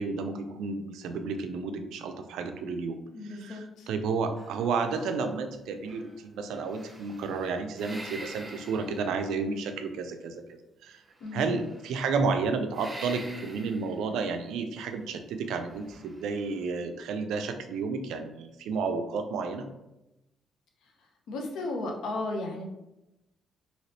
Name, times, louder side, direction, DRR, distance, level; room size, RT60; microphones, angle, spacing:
voice 1, 0.0-3.0 3.2-11.0 11.3-19.7, right 4 dB, 85° right, 7 dB, 0.3 m, -31 dB
voice 2, 3.1-3.9 11.2-11.6 21.3-22.6, left 2 dB, 75° left, 2 dB, 0.6 m, -34 dB
sound 1, 4.4-5.6 5.8-9.6 11.1-12.3 12.7-14.1 15.5-16.6, right 1 dB, 15° right, 0.7 m, -47 dB
3.1 x 2.8 x 2.8 m, 0.94 s
cardioid pair, 90°, 0 cm